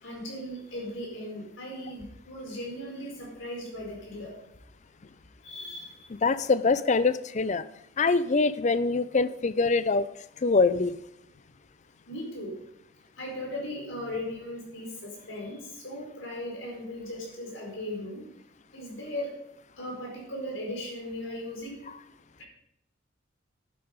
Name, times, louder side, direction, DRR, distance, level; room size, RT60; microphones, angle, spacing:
voice 1, 0.0-4.3 5.4-6.1 12.1-12.5 13.2-18.2 18.7-19.3 19.8-21.8 22.4-22.5, left 1 dB, 75° left, -1 dB, 4.7 m, -37 dB
voice 2, 6.2-7.6 8.0-10.1 10.4-10.9, left 4 dB, 35° left, 15 dB, 0.5 m, -24 dB
11.0 x 9.6 x 5.2 m, 0.81 s
head